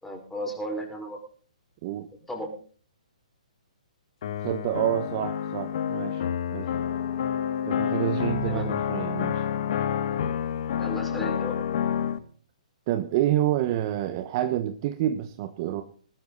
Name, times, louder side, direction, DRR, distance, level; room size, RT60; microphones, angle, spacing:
voice 1, 0.0-1.2 2.3-2.6 6.6-6.8 8.5-8.7 10.8-11.6, equal, 5° left, 1 dB, 5.3 m, -34 dB
sound 1, 4.2-12.2, left 9 dB, 55° left, 1.5 m, -28 dB
voice 2, 4.4-6.7 7.7-9.5 12.9-15.8, right 12 dB, 40° right, 9 dB, 1.2 m, -28 dB
19.5 x 12.5 x 4.1 m, 0.44 s
figure-of-eight pair, 130°, 4 cm